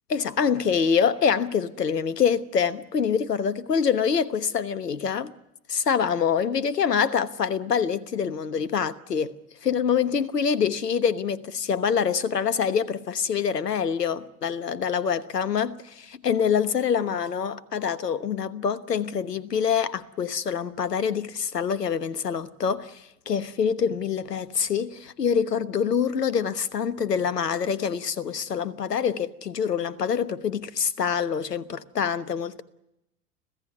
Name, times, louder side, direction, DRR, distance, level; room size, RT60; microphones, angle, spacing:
voice 1, 0.1-5.3 5.7-9.3 9.6-32.6, left 7 dB, 85° left, 1.3 m, -25 dB
26.0 x 16.5 x 9.6 m
figure-of-eight pair, 85°, 47 cm